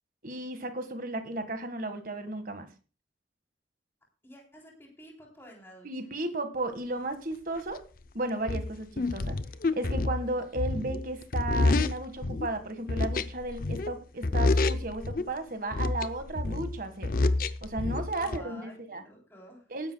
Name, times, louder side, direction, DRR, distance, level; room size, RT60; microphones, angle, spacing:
voice 1, 0.2-2.7 5.8-7.8 8.1-9.4 9.7-17.1 17.6-19.0 19.7-19.9, right 2 dB, 50° right, 8 dB, 1.7 m, -34 dB
voice 2, 4.2-6.1 18.1-19.7, equal, 15° left, -1 dB, 3.4 m, -50 dB
sound 1, 7.8-7.9 8.5-12.5 12.9-14.0 14.2-15.3 15.7-18.4, left 2 dB, 50° left, 0.6 m, -28 dB
19.0 x 10.5 x 2.3 m, 0.35 s
head